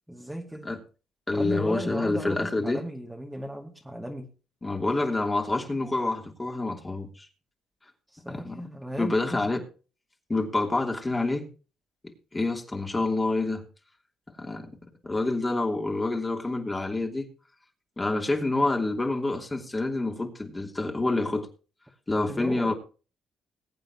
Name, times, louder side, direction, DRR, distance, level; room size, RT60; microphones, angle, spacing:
voice 1, 0.1-0.7 1.3-4.3 8.1-9.5 22.3-22.7, equal, 5° right, 2.3 m, -36 dB
voice 2, 1.3-2.8 4.6-7.3 8.3-8.6 9.0-9.6 10.3-11.4 12.3-13.6 14.4-14.7 15.0-17.3 18.0-21.5 22.1-22.7, left 2 dB, 20° left, 3.1 m, -27 dB
21.5 x 8.8 x 2.9 m
cardioid pair, 90°, 0 cm